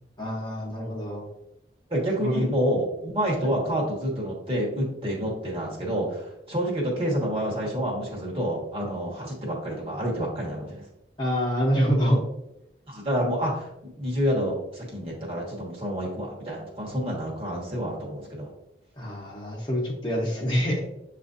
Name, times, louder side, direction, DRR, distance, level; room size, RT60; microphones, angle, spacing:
voice 1, 0.2-1.3 2.2-2.5 11.2-12.2 19.0-20.8, equal, 25° left, -3 dB, 0.9 m, -26 dB
voice 2, 1.9-10.8 12.9-18.5, equal, 30° right, -3 dB, 1.2 m, -28 dB
7.5 x 2.5 x 2.5 m, 0.84 s
head